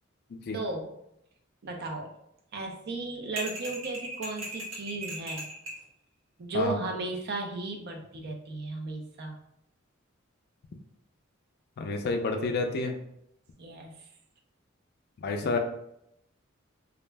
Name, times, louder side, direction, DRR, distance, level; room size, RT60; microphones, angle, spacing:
voice 1, 0.5-0.9 1.6-2.1 2.5-5.5 6.4-9.4 13.6-14.1, right 2 dB, 50° right, 3 dB, 0.5 m, -35 dB
sound 1, 3.4-5.8, right 1 dB, 70° right, 0.9 m, -38 dB
voice 2, 11.8-13.0 15.2-15.6, left 3 dB, 50° left, 5 dB, 0.3 m, -29 dB
2.4 x 2.0 x 3.3 m, 0.78 s
head